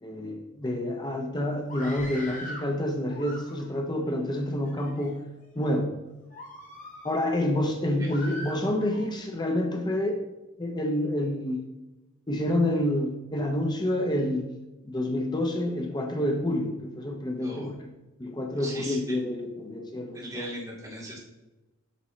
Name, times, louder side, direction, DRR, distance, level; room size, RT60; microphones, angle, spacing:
voice 1, 0.0-5.2 5.6-5.9 7.0-10.2 10.6-11.6 12.3-14.5 14.8-17.8 18.2-20.5, left 1 dB, 20° left, 3 dB, 0.7 m, -28 dB
Screaming, 1.6-2.7 3.1-3.8 4.5-5.1 5.6-5.8 6.3-7.3 8.1-9.1, left 1 dB, 40° left, 1.4 m, -41 dB
voice 2, 18.6-19.2 20.1-21.2, right 1 dB, 15° right, -5 dB, 2.1 m, -38 dB
8.3 x 6.2 x 3.1 m, 1.0 s
head